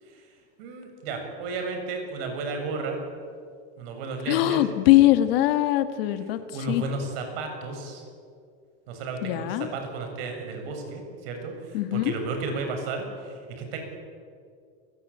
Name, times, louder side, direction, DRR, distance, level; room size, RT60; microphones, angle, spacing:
voice 1, 0.6-3.0 3.8-4.7 6.1-8.0 8.9-13.8, right 3 dB, 55° right, 4 dB, 7.7 m, -33 dB
voice 2, 4.3-6.4 6.7-6.8 9.2-9.7 11.7-12.1, left 15 dB, 55° left, 9 dB, 1.9 m, -21 dB
29.5 x 22.0 x 8.7 m, 2.2 s
supercardioid pair, 175°, 34 cm